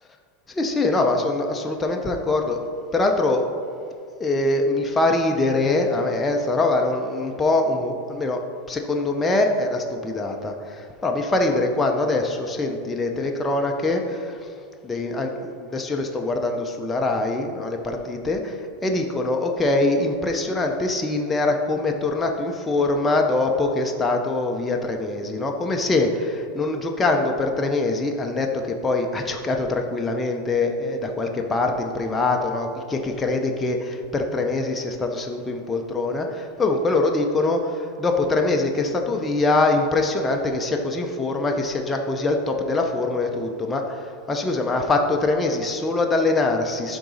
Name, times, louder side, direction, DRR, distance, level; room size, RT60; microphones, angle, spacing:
voice 1, 0.6-2.6 2.9-3.5 4.2-8.4 8.7-14.5 14.8-47.0, left 2 dB, 15° left, 2 dB, 0.6 m, -23 dB
11.5 x 4.0 x 3.9 m, 2.4 s
supercardioid pair, 135°, 0 cm